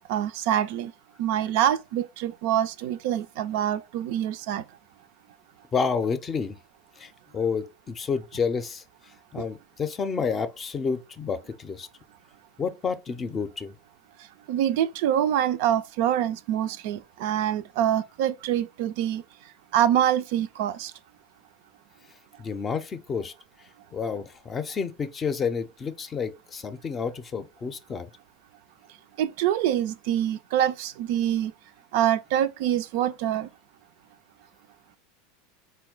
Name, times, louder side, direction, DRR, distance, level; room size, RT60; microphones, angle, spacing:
voice 1, 0.1-0.9 1.2-4.6 9.4-9.5 14.5-19.2 19.7-20.9 29.2-31.5 31.9-33.5, right 11 dB, 60° right, 0.3 m, -25 dB
voice 2, 5.7-6.6 7.0-8.8 9.3-11.9 12.6-13.7 22.4-23.3 23.9-28.1, left 5 dB, 30° left, 0.5 m, -30 dB
4.3 x 2.2 x 3.8 m
hypercardioid pair, 85°, 0 cm